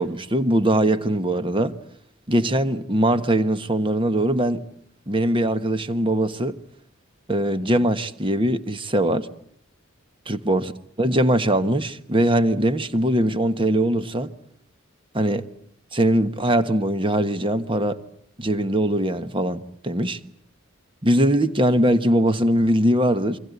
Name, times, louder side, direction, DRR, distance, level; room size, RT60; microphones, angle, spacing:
voice 1, 0.0-1.7 2.3-4.6 5.1-6.6 7.3-9.3 10.3-10.7 11.0-14.3 15.1-15.4 15.9-18.0 18.4-20.2 21.0-23.4, right 1 dB, 25° right, 1.3 m, -21 dB
29.0 x 23.5 x 8.3 m
head